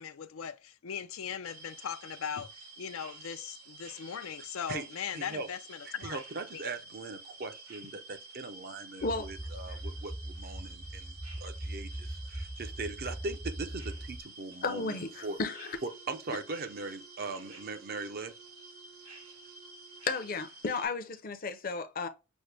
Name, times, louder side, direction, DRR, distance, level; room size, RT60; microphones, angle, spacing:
voice 1, 0.0-6.2 6.5-6.6, left 8 dB, 90° left, 0.5 m, -39 dB
sound 1, 1.4-20.9, right 2 dB, 90° right, 2.0 m, -51 dB
voice 2, 5.1-5.5 5.8-15.4 15.8-18.3, right 3 dB, 50° right, 0.6 m, -40 dB
sound 2, 9.0-14.2, right 1 dB, 5° right, 0.5 m, -40 dB
voice 3, 14.6-15.8 20.0-22.1, left 4 dB, 45° left, 0.6 m, -34 dB
Wind instrument woodwind instrument, 14.6-20.4, right 7 dB, 65° right, 2.4 m, -57 dB
6.2 x 2.1 x 3.3 m
head